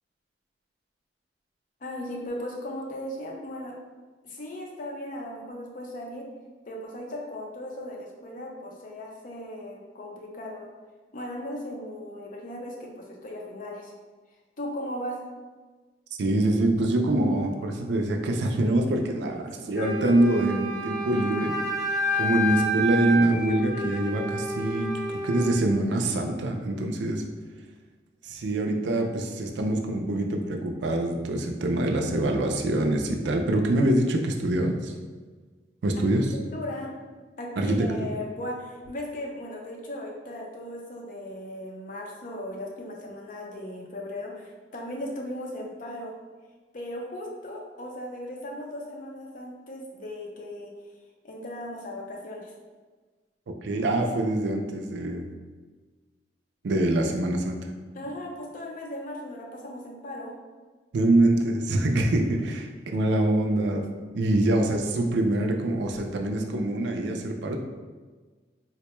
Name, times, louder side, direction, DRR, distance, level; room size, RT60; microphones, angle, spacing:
voice 1, 1.8-3.8 4.2-6.3 6.7-10.7 11.1-13.9 14.6-15.2 19.5-19.6 36.5-36.9 37.4-46.1 46.7-50.7 51.2-52.5 57.9-60.3, left 1 dB, 45° left, 0 dB, 0.6 m, -37 dB
voice 2, 16.1-21.5 22.1-24.9 25.2-27.2 28.2-34.9 35.8-36.3 37.6-38.1 53.5-55.3 56.6-57.7 60.9-63.9 64.1-67.6, right 1 dB, 70° right, 3 dB, 0.4 m, -25 dB
Wind instrument woodwind instrument, 19.7-25.6, equal, 85° left, 1.1 m, -29 dB
4.0 x 2.1 x 2.9 m, 1.4 s
head